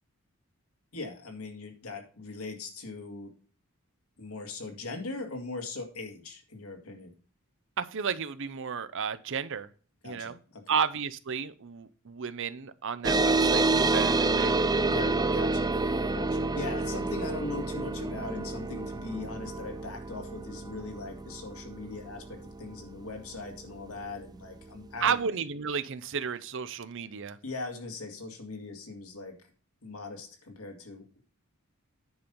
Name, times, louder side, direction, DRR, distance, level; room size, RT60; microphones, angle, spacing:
voice 1, 0.9-3.3 4.2-7.1 10.0-10.7 14.9-15.7 16.1-25.2 27.4-29.3 29.8-31.2, left 3 dB, 75° left, 4 dB, 2.1 m, -40 dB
voice 2, 7.8-9.7 10.0-10.4 10.7-14.6 25.0-27.4, right 6 dB, 60° right, 14 dB, 0.7 m, -32 dB
sound 1, 13.0-24.0, right 3 dB, 20° right, 0.4 m, -28 dB
9.6 x 5.2 x 5.5 m, 0.38 s
head